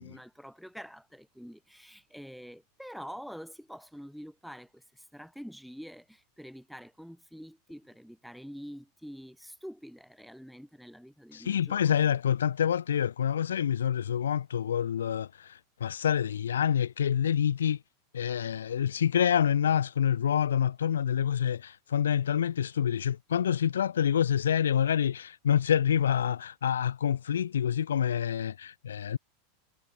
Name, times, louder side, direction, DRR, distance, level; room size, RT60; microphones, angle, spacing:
voice 1, 0.0-12.1, equal, ahead, 5.3 m, -46 dB
voice 2, 11.3-17.8 18.1-29.2, left 9 dB, 75° left, 0.4 m, -27 dB
figure-of-eight pair, 85°, 0 cm